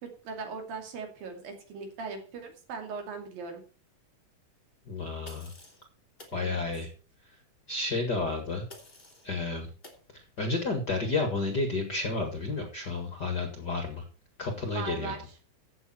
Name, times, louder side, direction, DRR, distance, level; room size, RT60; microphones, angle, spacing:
voice 1, 0.0-3.6 6.3-6.6 14.6-15.2, right 4 dB, 70° right, 4 dB, 4.3 m, -39 dB
voice 2, 4.9-5.5 6.3-6.9 7.7-8.6 9.2-9.7 10.1-14.0 14.4-15.1, left 3 dB, 40° left, 5 dB, 1.7 m, -31 dB
sound 1, 5.2-5.8 6.2-6.4 8.7-9.3 9.8-10.0, left 1 dB, 15° left, 2.7 m, -50 dB
15.0 x 7.8 x 4.4 m, 0.36 s
omnidirectional pair, 4.3 m